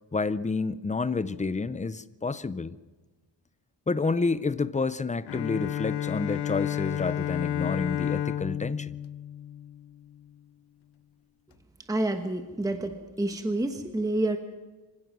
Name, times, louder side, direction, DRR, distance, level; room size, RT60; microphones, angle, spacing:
voice 1, 0.1-2.8 3.9-9.0, left 4 dB, 15° left, 0.5 m, -29 dB
Bowed string instrument, 5.3-10.2, left 10 dB, 65° left, 0.6 m, -31 dB
voice 2, 11.9-14.4, right 1 dB, 10° right, 1.1 m, -28 dB
25.0 x 17.0 x 6.1 m
wide cardioid pair, 145°, 44 cm